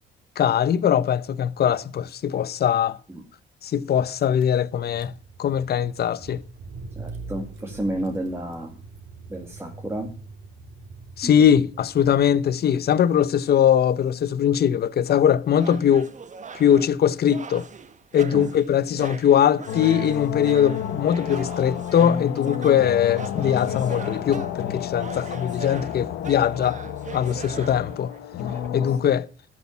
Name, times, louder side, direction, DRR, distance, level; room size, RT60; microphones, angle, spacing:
voice 1, 0.4-3.0 3.6-5.1 5.4-6.4 11.2-16.1 16.5-17.7 18.1-26.8 27.1-28.1 28.7-29.3, left 9 dB, 55° left, 0.7 m, -21 dB
Car / Engine, 4.2-12.6, right 3 dB, 70° right, 2.9 m, -42 dB
voice 2, 7.0-8.7 9.3-10.1 11.2-11.3 18.3-18.5 27.3-27.6 29.0-29.2, right 1 dB, 10° right, 2.4 m, -31 dB
sound 1, 15.6-28.7, right 5 dB, 40° right, 1.3 m, -41 dB
sound 2, 19.7-29.0, left 10 dB, 85° left, 1.1 m, -31 dB
12.5 x 6.2 x 8.3 m
cardioid pair, 90°, 20 cm